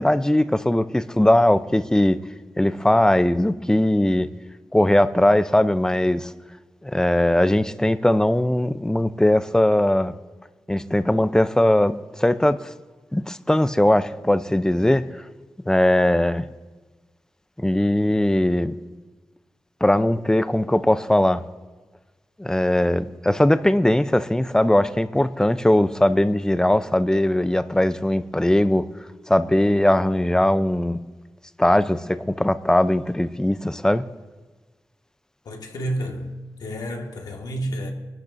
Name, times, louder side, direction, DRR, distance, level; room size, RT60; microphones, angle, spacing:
voice 1, 0.0-2.2 2.6-4.3 4.7-6.3 6.8-10.1 10.7-12.7 13.1-15.1 15.7-16.5 17.6-18.8 19.8-21.4 22.4-28.9 29.3-31.0 31.6-34.0, left 1 dB, 10° left, 0.6 m, -20 dB
voice 2, 35.5-36.3 36.6-37.9, right 1 dB, 90° left, 1.9 m, -30 dB
24.0 x 12.0 x 2.7 m
cardioid pair, 65°, 7 cm